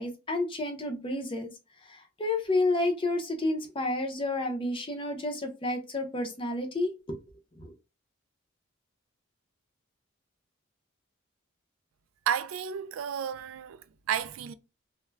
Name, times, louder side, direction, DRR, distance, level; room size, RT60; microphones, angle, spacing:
voice 1, 0.0-1.5 1.8-7.2 7.6-7.7, left 2 dB, 25° left, 0.5 m, -30 dB
voice 2, 12.3-14.5, right 8 dB, 80° right, 0.3 m, -32 dB
2.3 x 2.1 x 3.1 m
head